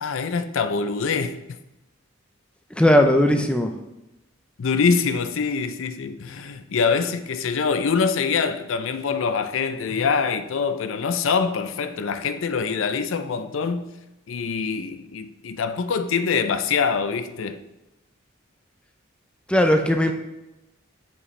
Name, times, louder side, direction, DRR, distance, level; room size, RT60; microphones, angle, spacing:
voice 1, 0.0-1.4 4.6-13.9 14.3-17.6 20.1-20.2, left 5 dB, 85° left, 0.5 m, -24 dB
voice 2, 2.8-3.7 19.5-20.1, left 1 dB, 5° left, 0.5 m, -18 dB
7.3 x 5.5 x 3.2 m
head